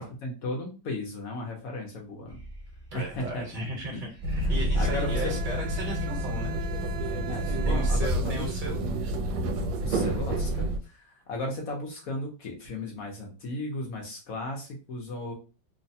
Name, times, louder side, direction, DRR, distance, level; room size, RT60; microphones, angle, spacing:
voice 1, 0.0-2.4 2.9-4.1 4.4-5.3 7.3-8.5 9.8-15.3, left 1 dB, 65° left, 0 dB, 0.9 m, -35 dB
sound 1, 2.3-3.7 4.1-7.0 7.3-8.2, right 1 dB, 55° right, 0.7 m, -30 dB
voice 2, 2.9-6.6 7.6-8.8 10.3-10.4, right 1 dB, 30° right, -1 dB, 1.0 m, -36 dB
sound 2, 4.2-10.8, right 1 dB, 80° right, 1.3 m, -30 dB
3.1 x 2.1 x 2.6 m, 0.32 s
omnidirectional pair, 2.1 m